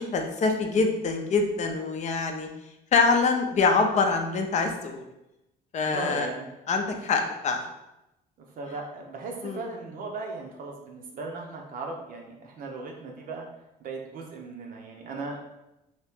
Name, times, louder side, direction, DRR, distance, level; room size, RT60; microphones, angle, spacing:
voice 1, 0.0-2.5 2.9-5.0 5.7-6.3 6.7-7.6 9.4-9.6, left 4 dB, 45° left, 4 dB, 0.5 m, -25 dB
voice 2, 5.9-6.5 6.9-7.1 8.6-13.5 13.8-15.4, right 3 dB, 55° right, 1 dB, 0.6 m, -37 dB
2.8 x 2.8 x 3.5 m, 0.91 s
cardioid pair, 110°, 17 cm